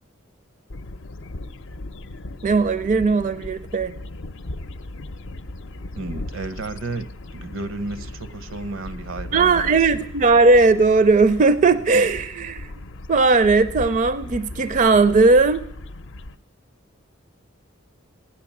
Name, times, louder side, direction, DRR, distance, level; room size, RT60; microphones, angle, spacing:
sound 1, 0.7-16.4, left 2 dB, 65° left, 0.6 m, -37 dB
voice 1, 2.4-3.9 9.3-12.7 13.1-15.6, right 3 dB, 40° right, 14 dB, 0.4 m, -17 dB
voice 2, 5.9-7.1 7.3-10.1, right 3 dB, 80° right, 15 dB, 0.7 m, -33 dB
15.5 x 10.0 x 7.2 m, 0.77 s
head